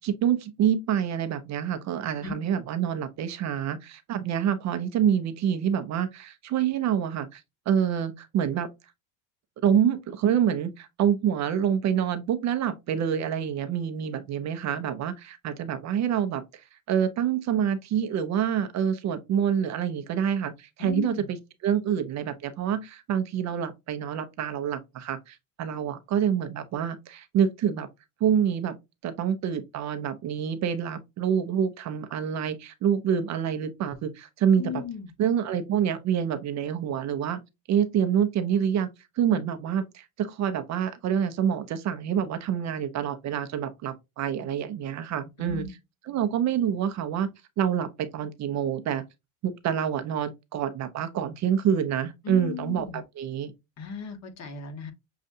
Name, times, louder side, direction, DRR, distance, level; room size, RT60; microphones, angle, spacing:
voice 1, 0.0-7.4 7.7-8.7 9.6-21.4 21.6-27.9 28.2-28.7 29.0-34.7 35.2-37.4 37.7-38.9 39.2-45.6 46.1-47.3 47.6-49.0 49.4-53.5, right 8 dB, 40° right, 0.7 m, -27 dB
voice 2, 20.8-21.3 34.6-35.1 45.4-45.7 52.2-53.0 53.8-54.9, left 6 dB, 40° left, 1.4 m, -35 dB
6.6 x 2.4 x 2.6 m
cardioid pair, 130°, 41 cm